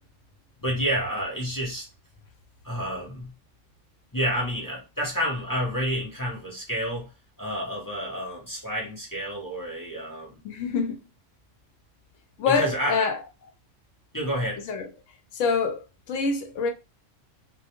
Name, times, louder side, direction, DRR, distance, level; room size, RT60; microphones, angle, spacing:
voice 1, 0.6-1.9 2.6-3.3 4.1-7.1 7.4-10.4 12.5-13.1 14.1-14.7, equal, 20° left, 0.5 m, -29 dB
voice 2, 10.4-11.0 12.4-13.2 14.7-14.9 15.3-16.7, left 5 dB, 80° left, 0.9 m, -26 dB
2.2 x 2.2 x 2.8 m
omnidirectional pair, 1.3 m